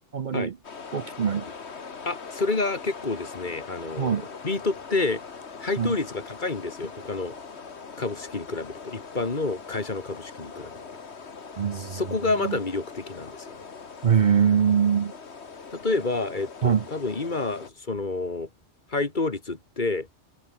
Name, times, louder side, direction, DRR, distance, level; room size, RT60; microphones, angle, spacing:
voice 1, 0.1-0.6 0.9-1.5 4.0-4.3 5.8-5.9 11.6-12.0 12.4-12.6 14.0-15.1 16.6-16.9, right 7 dB, 50° right, 0.8 m, -23 dB
sound 1, 0.6-17.7, left 5 dB, 70° left, 2.0 m, -42 dB
voice 2, 2.1-5.2 5.6-7.4 8.0-10.7 11.8-13.6 15.7-18.5 18.9-20.1, left 3 dB, 45° left, 2.1 m, -29 dB
omnidirectional pair, 1.2 m